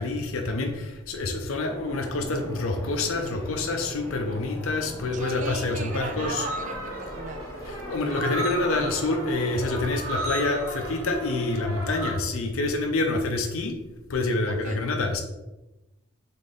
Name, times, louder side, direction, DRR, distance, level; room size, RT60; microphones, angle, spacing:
voice 1, 0.0-6.5 7.7-13.8 14.1-15.2, left 2 dB, 85° left, 4 dB, 0.5 m, -27 dB
sound 1, 1.6-9.8, equal, 15° left, 0.8 m, -42 dB
voice 2, 4.9-7.4 14.5-14.8, right 3 dB, 35° right, 7 dB, 0.4 m, -37 dB
sound 2, 5.9-12.1, right 1 dB, 85° right, 1.1 m, -35 dB
3.7 x 3.7 x 3.8 m, 1.0 s
head